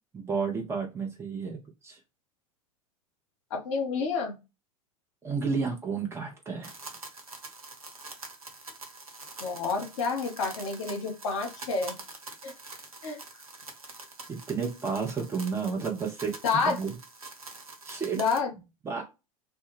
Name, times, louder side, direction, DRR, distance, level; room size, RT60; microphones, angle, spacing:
voice 1, 0.1-2.0 5.2-6.7 14.3-16.3 16.7-16.9 17.8-18.2 18.8-19.0, right 5 dB, 15° right, 1 dB, 0.7 m, -31 dB
voice 2, 3.5-4.4 9.4-12.0 12.4-12.5 13.0-13.2 16.4-16.8 18.1-18.5, left 4 dB, 55° left, 2 dB, 0.9 m, -29 dB
sound 1, 6.6-18.4, right 3 dB, 80° right, 0.7 m, -45 dB
2.2 x 2.2 x 3.1 m, 0.26 s
figure-of-eight pair, 85°, 18 cm